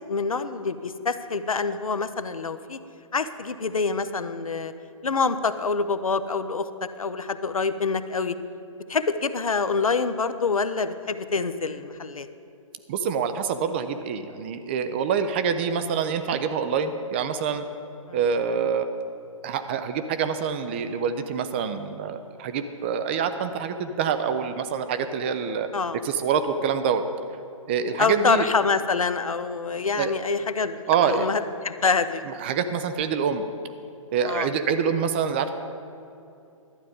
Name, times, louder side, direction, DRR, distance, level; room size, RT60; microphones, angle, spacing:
voice 1, 0.1-2.8 3.1-4.7 5.0-8.4 8.9-12.3 18.1-18.2 25.7-26.0 28.0-32.2 34.3-34.5, left 4 dB, 75° left, 12 dB, 0.7 m, -26 dB
voice 2, 12.9-17.6 18.1-18.9 19.4-25.7 26.0-27.0 27.7-28.5 30.0-30.1 30.9-31.3 32.3-33.4 34.1-35.5, right 7 dB, 20° right, 9 dB, 0.4 m, -26 dB
12.0 x 9.4 x 5.2 m, 2.7 s
figure-of-eight pair, 130°, 18 cm